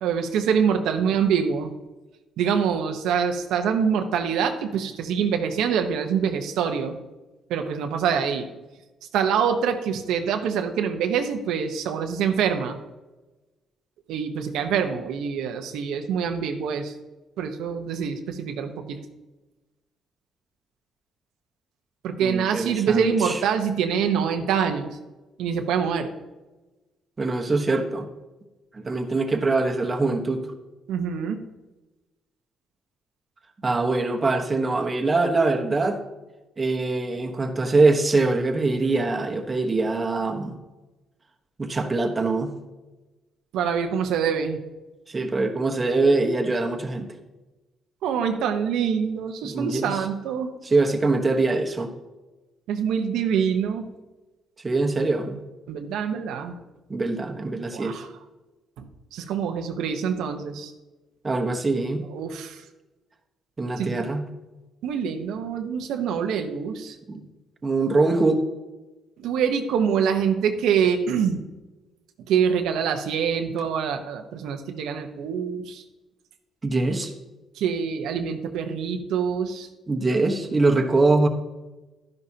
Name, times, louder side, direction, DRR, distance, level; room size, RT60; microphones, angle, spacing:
voice 1, 0.0-1.7 2.4-7.0 7.5-8.5 9.1-12.8 14.1-16.9 17.4-19.0 22.0-24.9 25.4-26.1 30.9-31.4 43.5-44.6 48.0-50.5 52.7-53.9 55.7-56.6 57.7-58.1 58.8-60.7 62.1-62.6 63.8-64.0 64.8-67.0 69.2-71.4 72.3-75.8 77.6-79.7, right 7 dB, 85° right, 5 dB, 1.0 m, -25 dB
voice 2, 22.2-23.4 27.2-28.1 28.7-30.5 33.6-36.0 36.6-40.6 41.6-42.6 45.1-47.1 49.4-50.0 50.6-51.9 54.6-55.4 56.9-58.0 61.2-62.0 63.6-64.2 67.1-67.2 67.6-68.4 76.6-77.1 79.9-81.3, right 3 dB, 25° right, 3 dB, 1.2 m, -23 dB
12.0 x 10.5 x 2.8 m, 1.1 s
cardioid pair, 120°, 0 cm